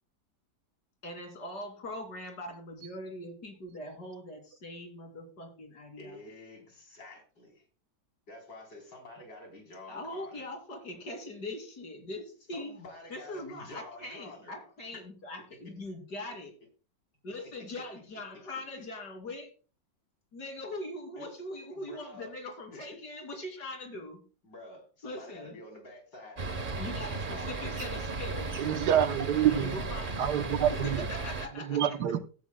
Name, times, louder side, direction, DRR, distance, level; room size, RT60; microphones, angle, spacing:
voice 1, 1.0-6.2 9.9-12.7 13.1-16.5 17.2-19.5 20.3-24.2 25.0-25.6 26.8-28.5 29.5-32.0, left 1 dB, 70° left, 3.4 m, -41 dB
voice 2, 6.0-7.6 8.3-10.4 12.5-15.0 17.4-17.7 21.2-21.3 21.7-22.3 22.7-23.0 24.4-27.7, left 2 dB, 90° left, 4.5 m, -49 dB
sound 1, 26.4-31.5, right 3 dB, 35° right, 1.1 m, -35 dB
voice 3, 28.6-29.7 30.2-31.0 31.7-32.2, right 10 dB, 75° right, 1.4 m, -26 dB
16.0 x 10.0 x 2.2 m
omnidirectional pair, 1.9 m